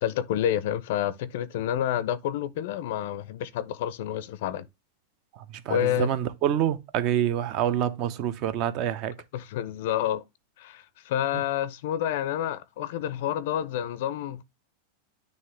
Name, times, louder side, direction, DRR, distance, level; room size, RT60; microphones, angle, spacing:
voice 1, 0.0-4.7 5.7-6.1 9.3-10.2 10.6-14.4, left 11 dB, 60° left, 0.5 m, -29 dB
voice 2, 5.7-9.1, right 11 dB, 40° right, 0.7 m, -26 dB
9.5 x 3.2 x 3.3 m
supercardioid pair, 160°, 0 cm